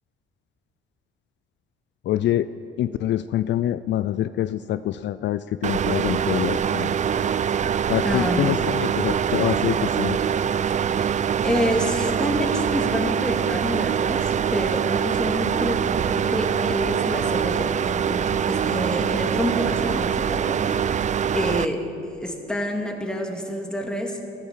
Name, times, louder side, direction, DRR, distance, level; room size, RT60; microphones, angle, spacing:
voice 1, 2.1-2.5 2.8-6.9 7.9-10.2, left 12 dB, 65° left, 13 dB, 0.4 m, -25 dB
sound 1, 5.6-21.7, right 8 dB, 40° right, 0.4 m, -24 dB
voice 2, 8.0-8.6 10.9-21.0 21.3-21.9 22.2-24.2, equal, 5° left, 1 dB, 2.1 m, -28 dB
13.5 x 12.0 x 7.4 m, 2.8 s
cardioid pair, 90°, 20 cm